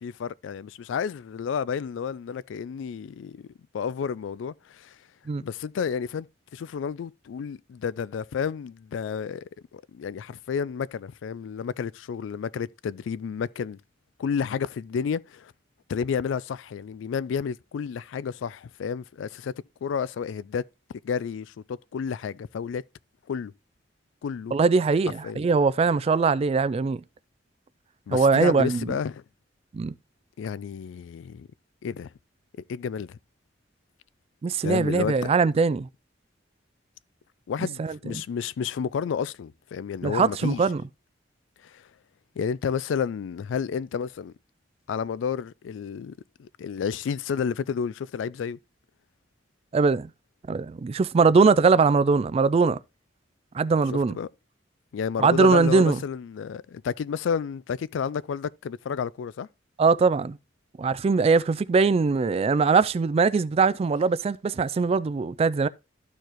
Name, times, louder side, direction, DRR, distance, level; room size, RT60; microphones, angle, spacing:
voice 1, 0.0-3.5 3.7-5.0 5.4-6.3 6.5-13.8 14.2-15.5 15.9-19.5 19.8-20.6 21.0-22.8 23.3-23.5 24.2-24.6 25.2-25.4 28.1-29.2 30.4-31.5 31.8-32.1 32.7-33.2 34.6-35.3 37.5-40.6 41.6-41.9 42.4-44.3 44.9-48.6 54.1-54.3 54.9-59.5, left 6 dB, 80° left, 0.3 m, -31 dB
voice 2, 24.5-27.0 28.1-28.8 29.7-29.9 34.4-35.9 37.8-37.9 40.0-40.8 49.7-50.1 50.5-52.8 53.5-54.2 55.2-56.0 59.8-60.4 60.8-65.7, right 4 dB, 30° right, 0.3 m, -21 dB
13.5 x 4.6 x 3.0 m
head